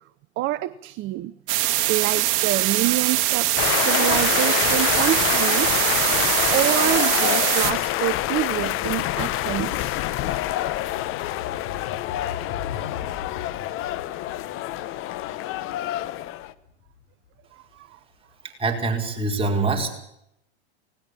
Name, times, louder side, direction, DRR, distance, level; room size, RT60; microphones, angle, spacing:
voice 1, 0.4-1.3 1.9-5.7 6.5-9.9 17.5-18.0, right 15 dB, 35° right, 16 dB, 0.7 m, -27 dB
sound 1, 1.5-7.7, right 15 dB, 50° right, 1.6 m, -22 dB
sound 2, 3.6-16.5, left 14 dB, 40° left, 1.1 m, -26 dB
sound 3, 10.5-17.7, left 7 dB, 60° left, 6.1 m, -40 dB
voice 2, 18.6-20.0, right 3 dB, 15° right, 1 dB, 4.8 m, -24 dB
19.0 x 18.0 x 8.4 m, 0.76 s
hypercardioid pair, 100°, 34 cm